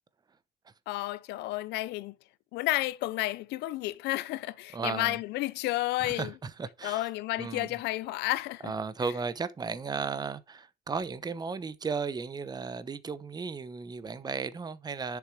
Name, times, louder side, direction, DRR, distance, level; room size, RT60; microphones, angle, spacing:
voice 1, 0.9-2.1 2.5-6.3 6.8-8.7, left 17 dB, 90° left, 0.8 m, -31 dB
voice 2, 4.7-5.2 6.0-7.1 7.4-7.7 8.6-15.2, right 5 dB, 25° right, 0.9 m, -35 dB
11.0 x 7.1 x 4.7 m
cardioid pair, 110°, 17 cm